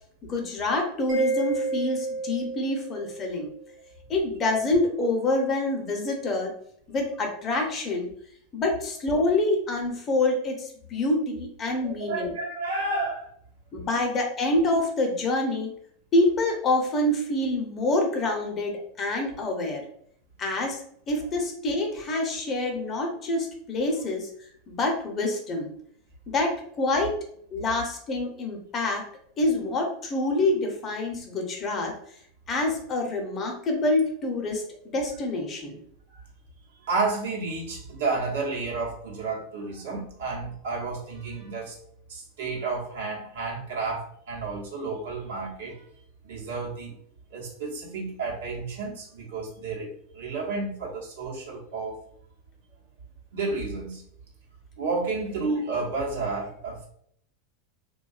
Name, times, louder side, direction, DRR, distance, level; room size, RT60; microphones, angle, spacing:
voice 1, 0.3-3.5 4.1-6.5 6.9-8.1 8.5-12.3 12.9-13.0 13.7-15.7 16.1-19.8 20.4-20.8 21.1-24.3 24.7-25.7 26.3-27.2 27.5-29.1 29.4-31.9 32.5-35.8, left 2 dB, 35° left, 2 dB, 0.7 m, -26 dB
Mallet percussion, 1.1-3.6, right 4 dB, 45° right, 0.6 m, -30 dB
voice 2, 11.8-13.3 13.9-14.0 36.1-36.2 36.8-41.8 42.1-45.9 46.2-46.9 47.3-52.0 53.3-54.0 54.8-56.9, right 3 dB, 75° right, -3 dB, 0.8 m, -31 dB
2.6 x 2.2 x 2.3 m, 0.65 s
hypercardioid pair, 95°, 0 cm